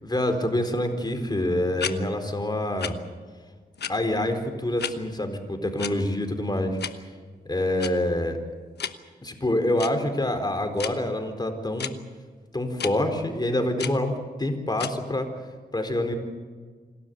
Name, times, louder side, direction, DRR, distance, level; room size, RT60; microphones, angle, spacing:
voice 1, 0.0-3.0 3.9-7.0 7.5-8.4 9.2-11.9 12.5-15.3 15.7-16.2, left 1 dB, 25° left, 6 dB, 4.2 m, -26 dB
sound 1, 1.8-2.0 2.8-2.9 3.8-3.9 4.8-4.9 5.8-5.9 6.8-6.9 7.8-7.9 8.8-8.9 9.8-9.9 10.8-10.9 11.8-11.9 12.8-12.9 13.8-14.0 14.8-14.9, left 8 dB, 75° left, 1.1 m, -31 dB
27.5 x 12.5 x 9.4 m, 1.6 s
cardioid pair, 55°, 17 cm